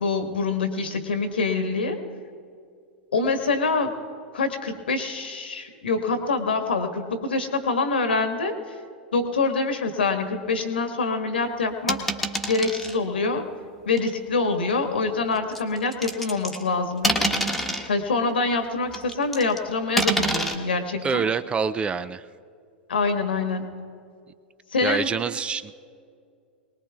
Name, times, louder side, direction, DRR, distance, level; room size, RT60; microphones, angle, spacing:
voice 1, 0.0-2.0 3.1-3.9 4.3-8.5 9.1-12.0 12.5-13.4 13.8-17.4 17.9-21.3 22.9-23.7 24.7-25.1, left 3 dB, 75° left, 6 dB, 1.5 m, -25 dB
sound 1, 11.9-13.0 14.0-14.1 15.5-16.7 17.0-17.9 18.9-19.6 20.0-20.5, right 1 dB, ahead, 1.3 m, -26 dB
voice 2, 21.0-22.3 24.8-25.9, right 5 dB, 20° right, 15 dB, 0.4 m, -26 dB
23.0 x 19.5 x 2.3 m, 2.3 s
figure-of-eight pair, 95°, 6 cm